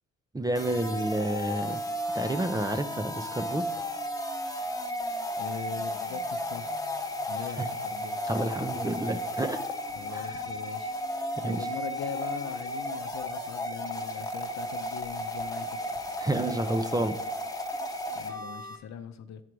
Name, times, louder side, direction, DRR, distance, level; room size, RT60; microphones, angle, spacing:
voice 1, 0.3-1.8 2.1-3.6 7.6-7.7 8.2-9.6 10.1-10.4 11.4-11.7 16.2-17.2, right 1 dB, 10° right, 9 dB, 0.5 m, -30 dB
sound 1, 0.5-18.8, left 1 dB, 10° left, 0.9 m, -34 dB
voice 2, 5.4-6.8 7.3-8.2 9.9-10.9 11.4-16.0 18.1-19.4, left 8 dB, 65° left, 10 dB, 0.7 m, -40 dB
9.2 x 4.8 x 4.6 m, 0.82 s
cardioid pair, 90°, 30 cm